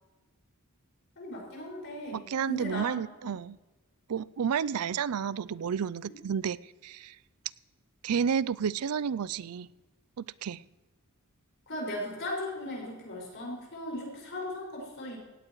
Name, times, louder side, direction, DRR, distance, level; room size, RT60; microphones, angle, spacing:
voice 1, 1.2-2.2 2.5-2.8 11.7-15.2, left 1 dB, 55° left, 5.7 m, -37 dB
voice 2, 2.1-3.6 4.1-6.6 6.8-7.1 8.0-9.7 10.2-10.6, right 7 dB, 90° right, 0.4 m, -31 dB
17.5 x 16.5 x 3.1 m
head